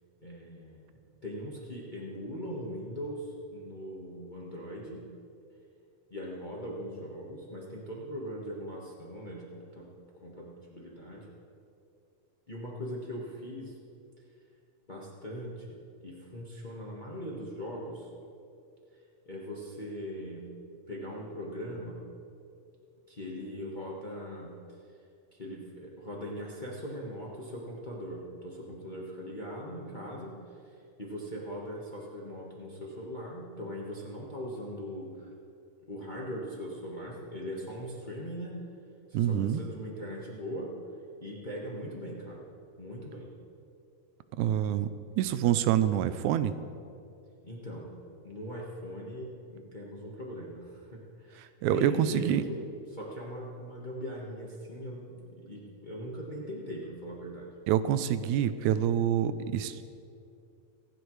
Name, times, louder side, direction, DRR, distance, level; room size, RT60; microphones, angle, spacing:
voice 1, 0.2-5.0 6.1-9.9 10.1-11.3 12.5-13.7 14.9-18.1 18.9-20.5 20.9-22.0 23.1-24.5 24.8-24.9 25.3-35.3 35.9-38.5 39.1-40.7 41.2-42.4 42.8-43.3 47.4-47.9 48.2-52.6 52.9-57.4, equal, 60° left, -4 dB, 0.4 m, -40 dB
voice 2, 39.1-39.6 44.4-44.9 45.2-46.5 51.6-52.4 57.7-59.8, right 10 dB, 85° right, 13 dB, 2.0 m, -26 dB
26.5 x 9.9 x 3.2 m, 2.5 s
omnidirectional pair, 3.4 m